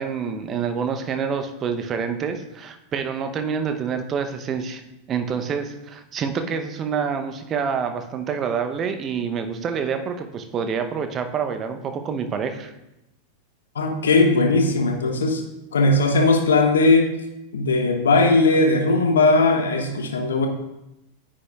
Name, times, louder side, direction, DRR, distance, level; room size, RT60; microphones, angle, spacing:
voice 1, 0.0-4.8 5.1-12.7, right 6 dB, 30° right, 7 dB, 0.8 m, -27 dB
voice 2, 13.7-15.4 15.7-17.1 17.5-20.5, left 3 dB, 65° left, 5 dB, 1.0 m, -18 dB
9.5 x 8.6 x 2.4 m, 0.91 s
figure-of-eight pair, 90°, 0 cm